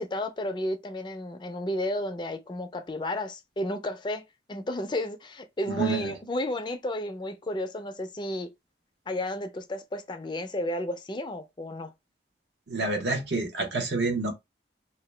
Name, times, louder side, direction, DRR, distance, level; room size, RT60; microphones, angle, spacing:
voice 1, 0.0-4.2 4.5-8.5 9.1-11.9, left 1 dB, 25° left, 0.4 m, -32 dB
voice 2, 5.7-6.2 12.7-14.3, right 3 dB, 75° right, 1.0 m, -28 dB
2.8 x 2.2 x 3.2 m
head